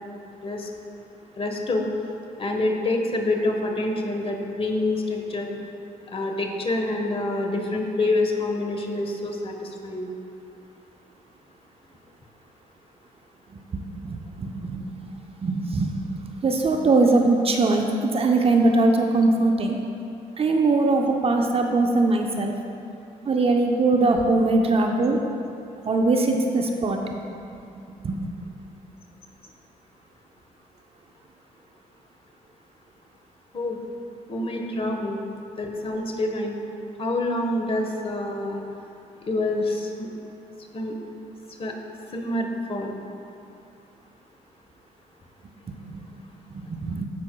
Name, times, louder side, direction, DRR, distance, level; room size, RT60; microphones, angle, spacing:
voice 1, 0.4-0.7 1.4-1.9 2.4-5.5 6.1-10.1 33.5-33.8 34.3-35.2 35.6-36.5 37.0-38.6 39.2-40.1 40.7-40.9 41.6-41.7 42.1-42.9, left 2 dB, 40° left, 2 dB, 1.3 m, -26 dB
voice 2, 13.7-15.1 15.4-19.8 20.4-22.6 23.3-25.2 25.8-27.2 27.5-27.6 28.0-28.3 45.8-46.0 46.5-47.1, right 2 dB, 40° right, 3 dB, 0.7 m, -22 dB
15.0 x 5.9 x 2.3 m, 2.6 s
supercardioid pair, 65°, 15 cm